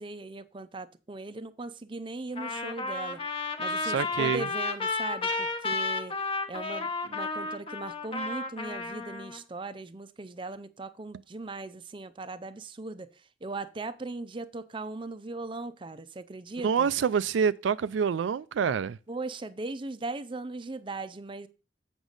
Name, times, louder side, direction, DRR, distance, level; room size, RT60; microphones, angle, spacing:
voice 1, 0.0-3.2 3.6-6.2 6.5-16.9 19.1-21.5, right 3 dB, 25° right, 0.5 m, -39 dB
Trumpet, 2.4-9.4, left 3 dB, 30° left, 1.0 m, -32 dB
voice 2, 3.8-4.5 16.6-19.0, right 6 dB, 85° right, 0.4 m, -27 dB
8.1 x 6.1 x 3.9 m
head